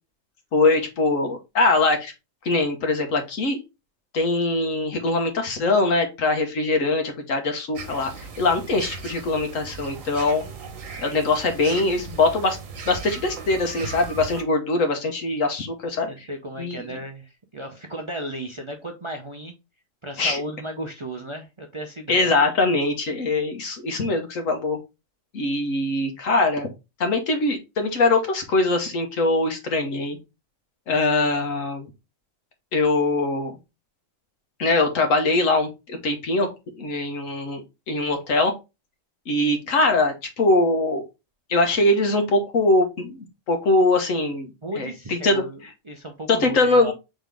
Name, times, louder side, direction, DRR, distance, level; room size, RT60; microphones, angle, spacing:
voice 1, 0.5-2.1 2.4-3.6 4.1-10.4 11.0-12.6 12.8-16.1 16.6-17.0 20.2-20.4 22.1-24.8 25.3-26.7 27.0-30.2 30.9-31.9 32.7-33.6 34.6-36.5 36.8-38.5 39.3-41.0 41.5-45.4 46.3-46.9, left 2 dB, 80° left, 4 dB, 1.5 m, -22 dB
sound 1, 7.8-14.4, right 5 dB, 80° right, 1.3 m, -37 dB
voice 2, 16.1-19.5 20.0-22.3 44.6-46.9, equal, 35° right, 3 dB, 0.5 m, -35 dB
4.2 x 3.7 x 3.4 m, 0.25 s
omnidirectional pair, 1.3 m